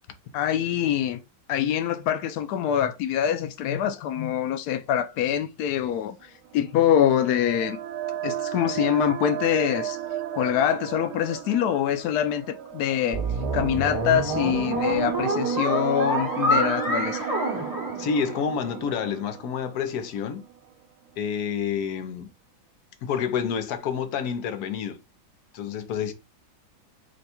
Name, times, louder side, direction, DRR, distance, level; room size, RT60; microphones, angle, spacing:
voice 1, 0.3-1.2 1.5-7.8 8.2-10.0 10.3-13.2 13.5-17.3, left 10 dB, 90° left, 0.8 m, -24 dB
sound 1, 6.5-20.6, right 11 dB, 80° right, 1.4 m, -34 dB
sound 2, 13.1-18.6, right 1 dB, 15° right, 0.9 m, -27 dB
voice 2, 18.0-20.4 21.2-22.3 23.0-25.0 25.5-26.1, left 7 dB, 65° left, 1.0 m, -28 dB
5.2 x 2.3 x 4.2 m
omnidirectional pair, 2.2 m